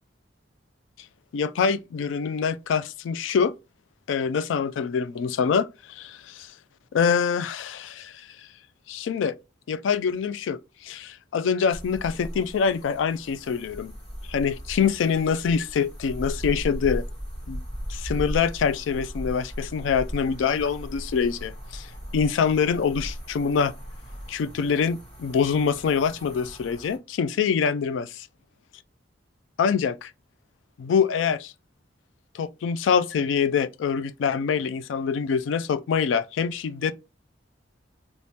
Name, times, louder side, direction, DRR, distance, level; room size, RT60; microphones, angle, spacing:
voice 1, 1.3-3.5 4.1-6.5 6.9-8.3 8.9-9.3 9.7-13.9 14.3-17.0 17.5-17.6 17.9-23.7 24.3-28.3 29.6-30.1 30.8-31.5 32.3-36.9, left 6 dB, 90° left, 0.3 m, -25 dB
sound 1, 11.7-27.0, equal, 40° left, 2.1 m, -37 dB
3.4 x 3.0 x 2.8 m
head